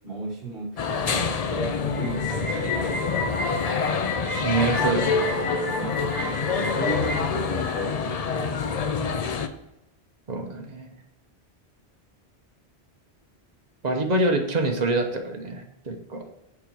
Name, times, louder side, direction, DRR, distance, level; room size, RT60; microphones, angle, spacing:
voice 1, 0.0-3.3 6.5-8.7, right 3 dB, 60° right, -1 dB, 1.7 m, -36 dB
sound 1, 0.8-9.5, left 5 dB, 45° left, 0.5 m, -27 dB
sound 2, 1.9-7.2, left 2 dB, 20° left, 1.0 m, -30 dB
voice 2, 4.4-5.3 10.3-10.9 13.8-16.2, right 2 dB, 40° right, 3 dB, 1.1 m, -26 dB
6.7 x 5.1 x 4.7 m, 0.90 s
omnidirectional pair, 1.1 m